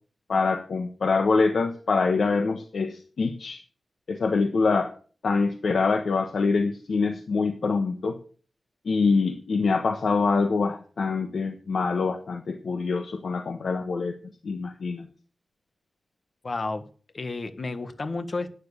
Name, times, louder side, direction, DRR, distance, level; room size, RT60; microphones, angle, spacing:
voice 1, 0.3-3.6 4.1-4.9 5.2-8.2 8.8-14.2 14.4-15.1, left 4 dB, 75° left, 6 dB, 1.3 m, -25 dB
voice 2, 16.4-16.9 17.1-18.5, left 3 dB, 45° left, 10 dB, 1.6 m, -31 dB
12.0 x 9.6 x 6.6 m, 0.41 s
wide cardioid pair, 115°, 0 cm